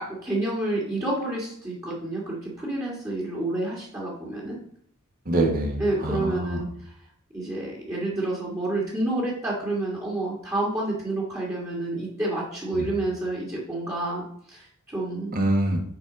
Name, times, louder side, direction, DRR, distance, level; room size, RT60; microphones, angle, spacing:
voice 1, 0.0-4.6 5.8-6.7 7.3-15.3, right 2 dB, 15° right, -5 dB, 1.7 m, -29 dB
voice 2, 5.2-6.6 12.7-12.9 15.3-15.8, right 1 dB, 40° right, 1 dB, 1.5 m, -25 dB
8.8 x 4.3 x 3.9 m, 0.64 s
head